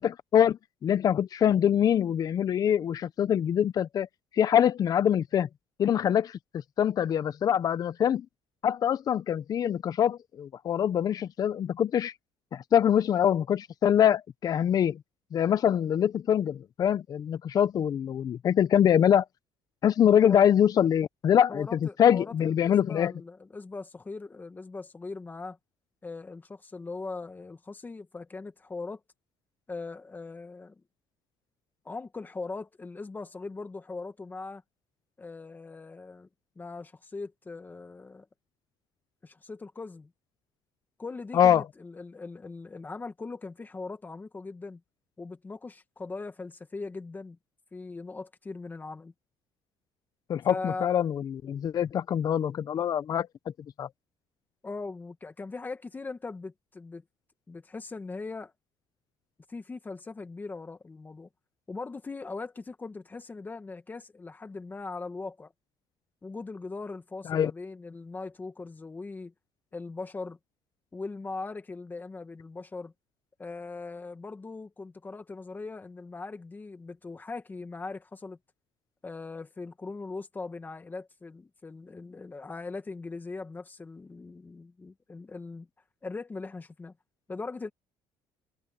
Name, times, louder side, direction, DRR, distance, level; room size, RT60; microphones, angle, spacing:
voice 1, 0.0-4.1 4.3-5.5 5.8-6.4 6.8-8.3 8.6-12.1 12.5-15.0 15.3-19.2 19.8-23.1 41.3-41.6 50.3-53.3 53.8-53.9 67.3-67.5, left 9 dB, 45° left, 0.7 m, -24 dB
voice 2, 21.5-25.6 26.0-29.0 29.7-30.8 31.9-34.6 35.2-36.3 36.6-38.3 39.2-40.1 41.0-44.8 45.2-47.4 47.7-49.1 50.5-50.9 54.6-57.0 57.5-58.5 59.5-61.3 61.7-65.5 66.2-69.3 69.7-70.4 70.9-72.9 73.4-78.4 79.0-85.7 86.0-86.9 87.3-87.7, left 3 dB, 20° left, 1.8 m, -40 dB
cardioid pair, 115°, 9 cm